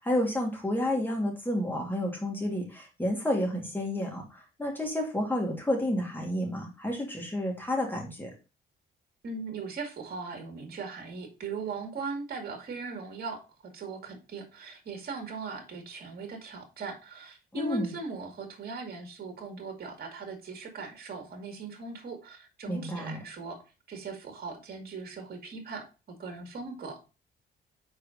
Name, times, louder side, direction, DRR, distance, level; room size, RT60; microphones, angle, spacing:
voice 1, 0.0-8.3 17.5-17.9 22.7-23.2, left 1 dB, 10° left, 0 dB, 2.8 m, -30 dB
voice 2, 9.2-23.6 23.9-27.0, right 4 dB, 50° right, 4 dB, 2.2 m, -39 dB
4.8 x 4.7 x 5.0 m, 0.31 s
cardioid pair, 90°, 20 cm